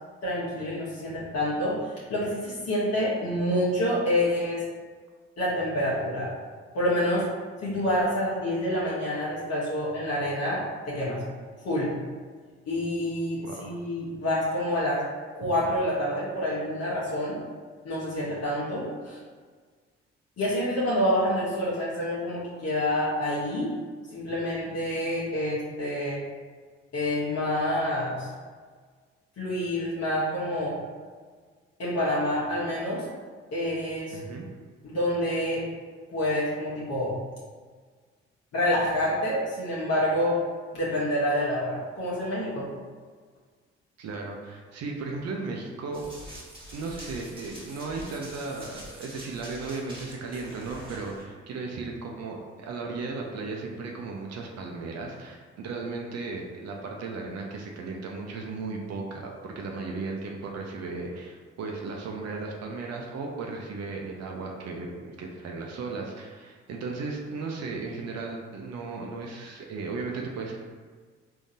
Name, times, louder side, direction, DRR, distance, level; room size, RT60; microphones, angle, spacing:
voice 1, 0.2-1.8 2.1-4.6 5.4-6.3 6.7-7.3 7.6-11.2 11.6-11.9 12.7-15.0 15.3-17.4 17.8-19.2 20.4-23.7 24.1-26.2 26.9-28.3 29.4-30.8 31.8-33.0 33.5-34.2 34.8-35.7 36.1-37.1 38.5-40.4 40.7-42.7, left 1 dB, 60° left, -7 dB, 1.0 m, -27 dB
voice 2, 13.4-13.7 15.4-15.5 34.1-34.4 44.0-46.1 46.7-70.6, right 3 dB, 60° right, 0 dB, 0.6 m, -36 dB
Run, 45.9-51.2, equal, 15° right, 1.5 m, -45 dB
3.6 x 2.7 x 2.7 m, 1.6 s
hypercardioid pair, 50°, 30 cm